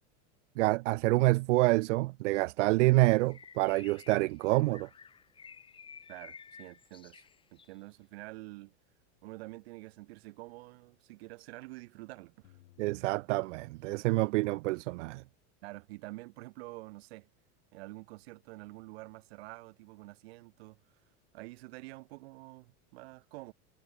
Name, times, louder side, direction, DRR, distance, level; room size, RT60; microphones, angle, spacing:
voice 1, 0.6-4.9 12.8-15.2, right 21 dB, 80° right, 0.5 m, -27 dB
Bird, 2.9-7.8, left 6 dB, 15° left, 5.3 m, -53 dB
voice 2, 6.1-8.7 9.2-12.5 15.6-17.3 17.7-20.8 21.3-23.5, right 21 dB, 60° right, 2.2 m, -48 dB
sound 1, 12.4-14.6, left 16 dB, 75° left, 7.6 m, -64 dB
supercardioid pair, 175°, 36 cm